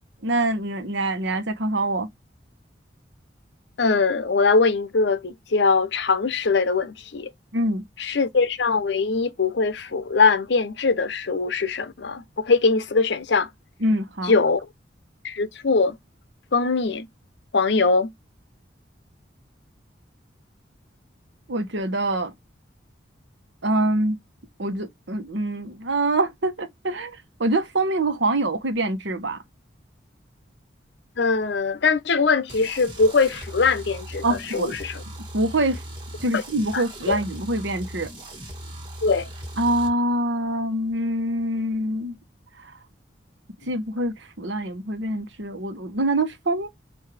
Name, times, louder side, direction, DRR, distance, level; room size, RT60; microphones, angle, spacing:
voice 1, 0.2-2.1 7.5-7.8 13.8-14.3 21.5-22.3 23.6-24.2 24.6-29.4 34.2-34.7 35.3-35.8 36.2-38.1 39.6-42.2 42.6-42.7 43.7-46.7, right 1 dB, 75° right, 1.1 m, -25 dB
voice 2, 3.8-7.3 8.0-13.5 14.2-14.6 15.2-16.0 16.5-17.1 17.5-18.1 31.2-35.0 36.3-36.4 36.7-37.2 39.0-39.3, left 4 dB, 65° left, 0.7 m, -22 dB
sound 1, 32.5-39.9, right 1 dB, 25° right, 1.6 m, -39 dB
5.9 x 2.7 x 3.3 m
head